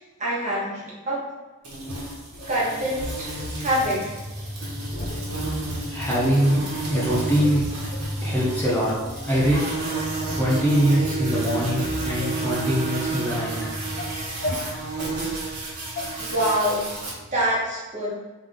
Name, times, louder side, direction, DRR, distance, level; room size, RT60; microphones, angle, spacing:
voice 1, 0.2-1.3 2.5-3.0 3.3-4.1 16.2-16.9 17.3-18.1, equal, 35° right, -7 dB, 1.3 m, -25 dB
sound 1, 1.6-17.1, right 3 dB, 85° right, 1.4 m, -31 dB
sound 2, 1.8-2.5 2.9-3.9 4.3-4.6 4.9-5.8 6.4-6.5 7.0-8.1 8.7-8.8 9.1-9.6 9.9-10.5 10.9-11.2 11.5-13.3 13.7-15.2 16.0-16.1, left 1 dB, 40° left, 0.5 m, -36 dB
sound 3, 2.2-17.6, equal, 15° right, 1.2 m, -36 dB
voice 2, 5.9-6.6 6.9-7.7 8.2-8.9 9.2-9.6 10.4-13.5, equal, 10° left, -8 dB, 0.8 m, -22 dB
3.6 x 3.4 x 3.6 m, 1.2 s
head